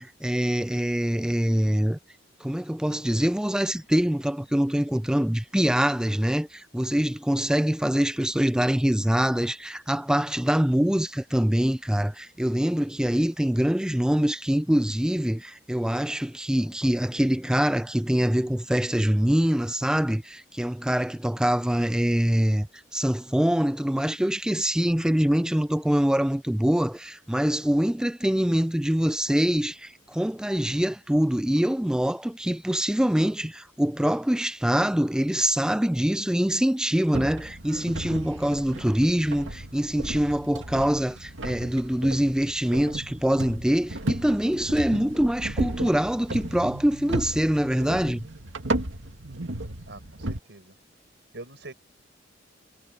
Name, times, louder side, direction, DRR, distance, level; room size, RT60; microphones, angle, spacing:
voice 1, 0.0-2.0 2.4-22.7 22.9-48.3, equal, 5° right, 0.4 m, -24 dB
sound 1, 37.1-50.4, right 1 dB, 80° right, 2.3 m, -34 dB
voice 2, 49.9-50.8 51.3-51.7, right 2 dB, 65° right, 6.6 m, -44 dB
head